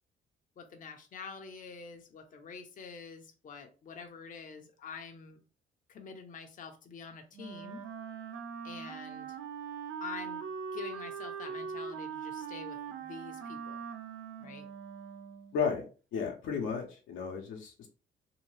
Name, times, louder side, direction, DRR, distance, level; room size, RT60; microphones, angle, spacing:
voice 1, 0.6-5.4 5.9-7.8 8.6-9.4 10.0-10.4 10.7-13.8 14.4-14.7, left 5 dB, 40° left, 5 dB, 0.6 m, -46 dB
Wind instrument woodwind instrument, 7.3-15.6, right 6 dB, 85° right, 0.5 m, -41 dB
voice 2, 15.5-15.8 16.1-17.9, left 6 dB, 85° left, 1 dB, 0.7 m, -33 dB
2.7 x 2.2 x 3.1 m, 0.36 s
cardioid pair, 90°, 20 cm